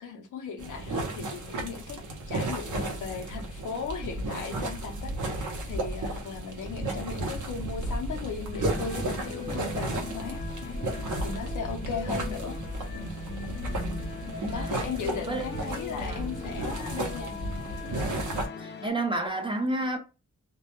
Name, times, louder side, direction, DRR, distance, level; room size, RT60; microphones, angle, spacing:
voice 1, 0.0-2.0 2.3-10.8 11.2-12.6 12.9-13.1 14.5-17.4, left 5 dB, 85° left, 0.6 m, -37 dB
sound 1, 0.6-18.5, right 1 dB, 85° right, 0.7 m, -33 dB
sound 2, 8.5-18.9, left 5 dB, 35° left, 0.4 m, -40 dB
voice 2, 13.7-14.7 15.3-15.5 16.0-16.2 18.6-20.0, right 2 dB, 15° right, 0.5 m, -31 dB
2.2 x 2.0 x 2.9 m
wide cardioid pair, 105°, 30 cm